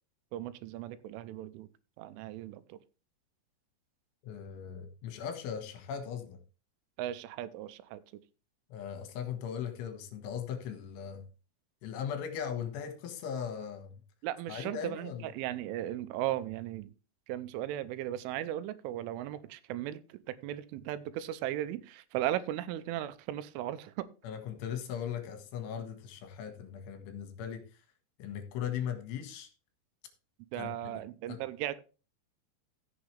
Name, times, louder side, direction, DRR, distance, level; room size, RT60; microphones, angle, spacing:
voice 1, 0.3-1.7 2.0-2.8 7.0-8.0 14.2-16.9 17.3-24.1 30.5-31.8, right 13 dB, 90° right, 14 dB, 3.2 m, -37 dB
voice 2, 4.2-6.4 8.7-11.2 11.8-14.0 14.5-15.3 24.2-27.6 28.2-29.5 30.6-30.8 31.3-31.4, left 8 dB, 75° left, 7 dB, 4.0 m, -38 dB
15.0 x 7.1 x 3.4 m, 0.34 s
omnidirectional pair, 5.6 m